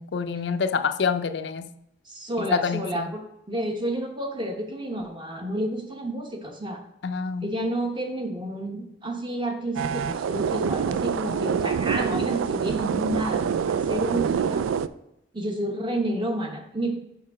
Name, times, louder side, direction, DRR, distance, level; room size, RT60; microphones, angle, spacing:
voice 1, 0.0-1.7 2.4-3.1 7.0-7.5, left 6 dB, 60° left, 10 dB, 0.4 m, -27 dB
voice 2, 2.1-3.2 3.5-6.8 7.4-14.6 15.3-17.0, right 1 dB, 25° right, 4 dB, 0.9 m, -30 dB
sound 1, 9.8-14.9, right 6 dB, 85° right, 0.3 m, -26 dB
6.6 x 5.3 x 4.8 m, 0.82 s
head